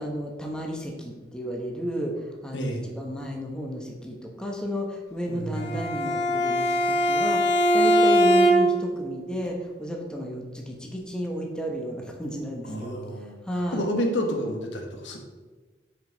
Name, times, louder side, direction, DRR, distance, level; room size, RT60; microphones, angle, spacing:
voice 1, 0.0-2.1 2.4-13.0 13.5-13.8, equal, 5° left, 0 dB, 0.9 m, -33 dB
voice 2, 2.5-2.9 5.3-6.0 12.6-15.2, equal, 85° left, 3 dB, 1.3 m, -30 dB
Bowed string instrument, 5.5-8.9, equal, 60° left, 0.8 m, -21 dB
8.7 x 5.1 x 3.9 m, 1.3 s
head